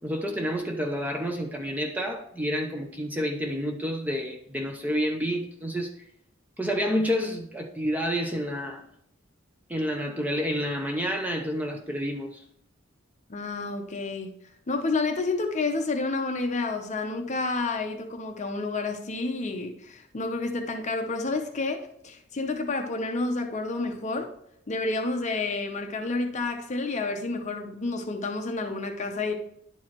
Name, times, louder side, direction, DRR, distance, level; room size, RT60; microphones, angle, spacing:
voice 1, 0.0-5.9 6.6-8.8 9.7-12.4, equal, 10° right, 2 dB, 0.6 m, -29 dB
voice 2, 13.3-14.3 14.7-24.3 24.7-29.3, left 3 dB, 35° left, 5 dB, 0.6 m, -30 dB
10.5 x 4.6 x 2.9 m, 0.73 s
head